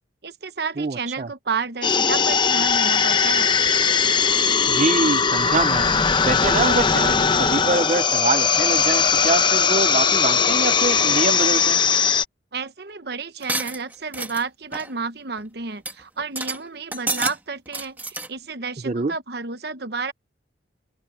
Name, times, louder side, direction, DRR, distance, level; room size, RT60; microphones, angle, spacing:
voice 1, 0.2-3.5 12.5-20.1, right 4 dB, 60° right, 1.1 m, -31 dB
voice 2, 0.8-1.3 4.6-11.8 18.8-19.1, right 3 dB, 40° right, 0.5 m, -25 dB
sound 1, 1.8-12.2, left 6 dB, 25° left, 0.7 m, -19 dB
sound 2, 13.4-14.4 14.7-14.9 15.4-15.5 15.9-16.0 16.2-16.6 16.9-17.4 17.7-18.3, right 2 dB, 10° right, 1.8 m, -29 dB
open air
head